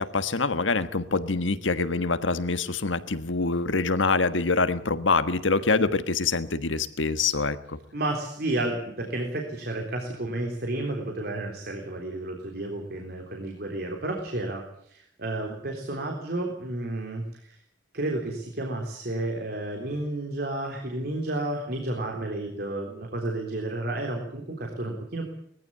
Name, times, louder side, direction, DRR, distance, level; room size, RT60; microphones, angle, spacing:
voice 1, 0.0-7.8, left 3 dB, 85° left, 12 dB, 1.5 m, -25 dB
voice 2, 7.9-17.6 17.9-25.3, right 2 dB, 55° right, 2 dB, 3.7 m, -31 dB
21.5 x 15.0 x 9.8 m, 0.70 s
head